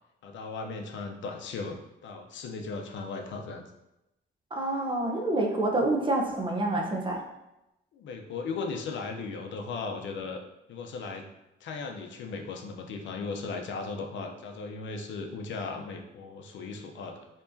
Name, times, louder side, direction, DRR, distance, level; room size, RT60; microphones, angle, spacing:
voice 1, 0.2-3.6 7.9-10.4 10.7-11.3 11.6-17.2, left 4 dB, 70° left, 3 dB, 0.6 m, -37 dB
voice 2, 4.5-7.2, right 2 dB, 25° right, 0 dB, 0.7 m, -27 dB
4.7 x 2.9 x 2.6 m, 0.92 s
cardioid pair, 90°, 20 cm